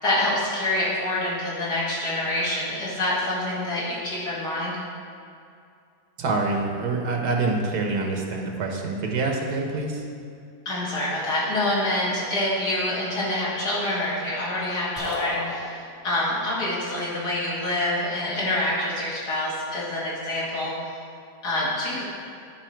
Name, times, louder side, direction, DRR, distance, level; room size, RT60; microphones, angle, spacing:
voice 1, 0.0-4.7 10.7-20.9 21.4-22.1, left 1 dB, 85° left, -6 dB, 2.6 m, -26 dB
voice 2, 6.2-10.0, right 3 dB, 75° right, 1 dB, 1.5 m, -26 dB
sound 1, 15.0-16.3, left 1 dB, 65° left, 1.9 m, -34 dB
10.5 x 5.0 x 4.5 m, 2.4 s
omnidirectional pair, 1.7 m